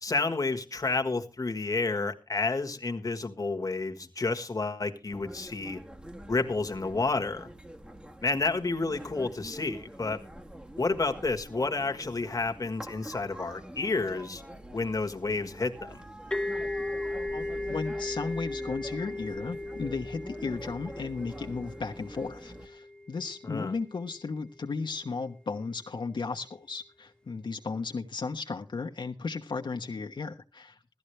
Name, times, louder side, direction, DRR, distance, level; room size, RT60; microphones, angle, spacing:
voice 1, 0.0-5.8 6.3-7.5 8.2-10.2 10.8-14.4 14.7-16.0 23.4-23.7, left 3 dB, 50° left, 1.5 m, -30 dB
sound 1, 5.1-22.7, right 1 dB, 10° right, 1.2 m, -45 dB
sound 2, 16.3-23.8, left 2 dB, 10° left, 1.2 m, -37 dB
voice 2, 17.3-30.8, left 4 dB, 80° left, 1.2 m, -35 dB
16.5 x 13.0 x 3.2 m
wide cardioid pair, 90°, 8 cm